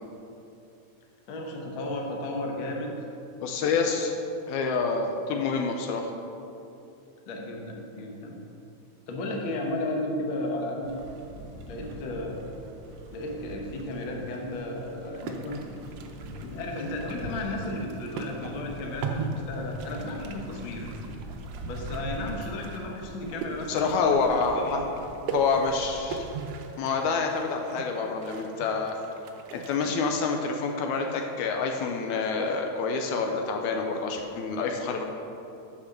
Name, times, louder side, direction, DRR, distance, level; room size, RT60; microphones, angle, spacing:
voice 1, 1.3-3.0 3.6-3.9 7.3-8.4 9.1-11.1 11.7-12.5 13.1-15.6 16.4-20.9 21.6-24.0 24.3-24.8, left 1 dB, 60° left, 0 dB, 1.3 m, -34 dB
voice 2, 3.4-4.1 4.5-6.1 23.7-24.8 25.3-26.3 26.8-29.0 29.5-35.0, left 4 dB, 80° left, 3 dB, 1.9 m, -27 dB
sound 1, 10.8-26.4, equal, 55° right, 1.5 m, -43 dB
sound 2, 15.1-30.0, right 4 dB, 75° right, 1.4 m, -39 dB
8.3 x 5.8 x 6.6 m, 2.8 s
omnidirectional pair, 3.5 m